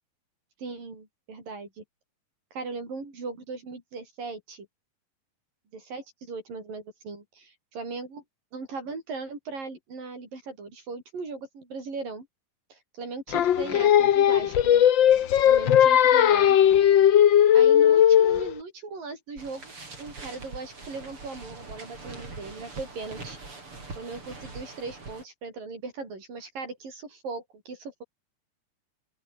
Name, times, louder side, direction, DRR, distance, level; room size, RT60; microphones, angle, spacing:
voice 1, 0.6-1.8 2.5-4.7 5.7-8.2 8.5-12.3 12.7-14.9 15.5-16.6 17.5-19.7 20.0-23.4 23.9-28.0, right 4 dB, 85° right, 9.4 m, -38 dB
Singing, 13.3-18.5, left 10 dB, 85° left, 1.0 m, -18 dB
sound 1, 19.4-25.2, right 3 dB, 40° right, 7.0 m, -43 dB
open air
omnidirectional pair, 3.8 m